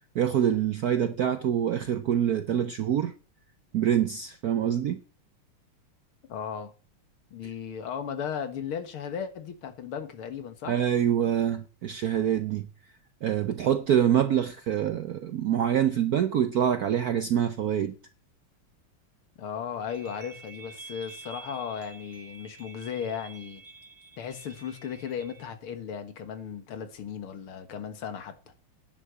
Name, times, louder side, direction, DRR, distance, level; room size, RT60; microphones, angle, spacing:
voice 1, 0.1-3.1 3.7-5.0 10.7-12.7 13.2-17.9, right 9 dB, 70° right, 0.9 m, -25 dB
voice 2, 6.3-6.7 7.3-10.9 19.4-23.6 24.2-28.3, left 7 dB, 75° left, 2.3 m, -36 dB
sound 1, 19.9-25.5, right 4 dB, 45° right, 2.5 m, -48 dB
10.5 x 6.3 x 6.9 m
omnidirectional pair, 2.4 m